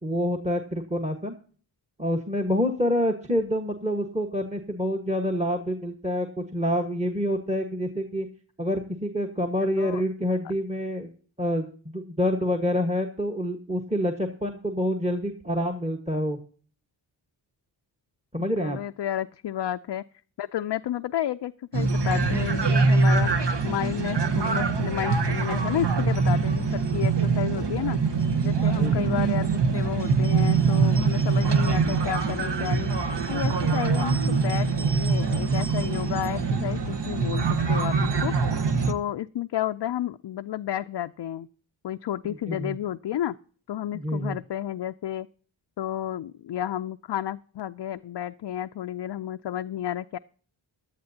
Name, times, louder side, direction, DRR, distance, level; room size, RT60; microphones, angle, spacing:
voice 1, 0.0-1.3 2.0-8.3 8.6-11.1 11.4-16.4 18.3-18.8 28.6-29.1 42.5-42.7 43.9-44.4, equal, 15° right, 6 dB, 1.4 m, -27 dB
voice 2, 9.6-10.0 10.4-10.5 18.6-20.0 20.4-23.3 23.6-28.0 28.4-32.9 33.3-38.3 38.9-41.5 41.8-43.4 43.7-45.3 45.8-50.2, left 11 dB, 60° left, 9 dB, 0.5 m, -31 dB
sound 1, 21.7-38.9, right 4 dB, 55° right, 1.3 m, -24 dB
16.5 x 11.0 x 2.8 m, 0.43 s
cardioid pair, 45°, 48 cm